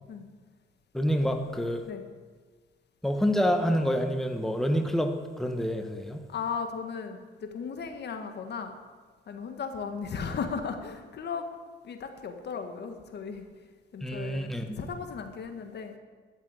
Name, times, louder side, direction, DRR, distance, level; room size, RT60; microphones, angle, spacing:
voice 1, 0.9-1.8 3.0-6.2 14.0-14.8, equal, ahead, 5 dB, 1.3 m, -27 dB
voice 2, 6.3-8.7 9.3-11.5 11.8-13.4 13.9-15.9, left 5 dB, 60° left, 6 dB, 1.8 m, -36 dB
12.0 x 7.4 x 9.8 m, 1.4 s
cardioid pair, 90°, 20 cm